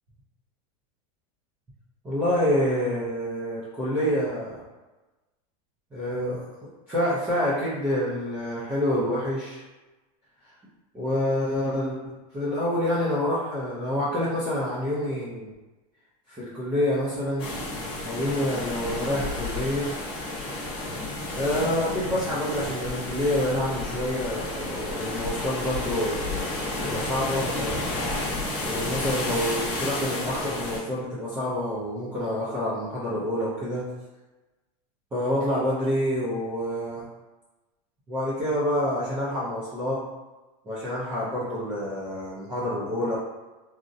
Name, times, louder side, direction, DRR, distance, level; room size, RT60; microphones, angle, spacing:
voice 1, 2.0-4.6 5.9-9.6 10.9-12.0 12.3-15.5 16.3-17.5 18.0-20.0 21.3-27.8 28.6-33.9 35.1-37.0 38.1-40.0 40.7-43.2, left 1 dB, 10° right, -11 dB, 0.4 m, -27 dB
sound 1, 17.4-30.8, left 2 dB, 30° left, 1.0 m, -31 dB
3.6 x 2.0 x 2.6 m, 1.1 s
supercardioid pair, 175°, 19 cm